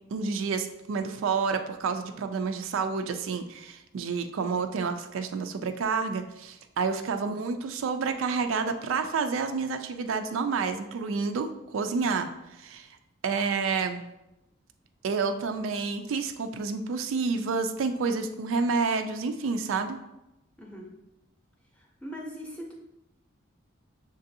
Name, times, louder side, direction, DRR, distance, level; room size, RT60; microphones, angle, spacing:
voice 1, 0.1-12.3 12.6-12.9 13.2-14.1 15.0-20.0, right 5 dB, 80° right, 7 dB, 0.4 m, -29 dB
voice 2, 20.6-20.9 21.7-22.8, equal, 5° left, -1 dB, 0.6 m, -41 dB
6.6 x 2.5 x 2.7 m, 0.91 s
head